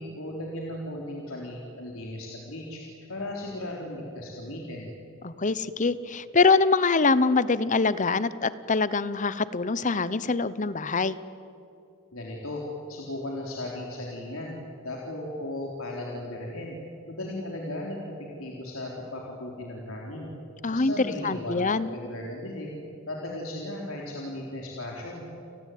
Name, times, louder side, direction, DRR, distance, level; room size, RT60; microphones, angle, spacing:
voice 1, 0.0-2.8 3.1-5.0 12.1-12.6 12.9-14.6 14.8-16.8 17.1-20.3 20.7-22.7 23.1-25.3, left 1 dB, 75° left, -2 dB, 3.8 m, -36 dB
voice 2, 5.2-11.2 20.6-21.9, left 4 dB, 35° left, 16 dB, 0.9 m, -24 dB
30.0 x 19.0 x 9.3 m, 2.7 s
head